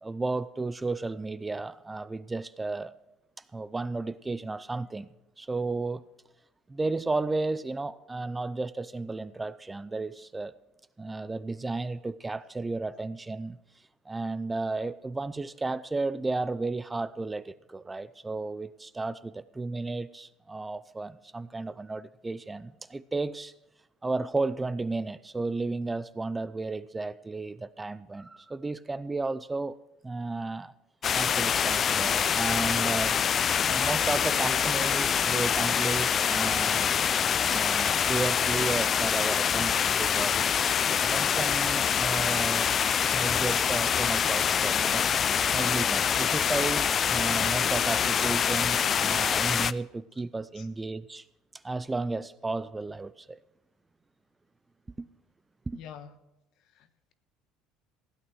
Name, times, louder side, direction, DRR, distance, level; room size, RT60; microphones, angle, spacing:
voice 1, 0.0-2.9 3.5-5.1 5.4-6.0 6.7-10.5 11.0-13.6 14.1-23.5 24.0-29.8 30.0-30.7 31.1-33.2 33.7-36.9 37.4-40.6 41.0-42.7 43.1-45.1 45.5-51.2 51.6-53.4 55.0-55.1 55.7-55.8, right 3 dB, 15° right, 0.5 m, -33 dB
sound 1, 31.0-49.7, left 8 dB, 40° left, 0.4 m, -25 dB
voice 2, 55.7-56.1 56.7-57.1, left 8 dB, 65° left, 1.3 m, -46 dB
16.0 x 8.8 x 6.1 m
supercardioid pair, 100°, 0 cm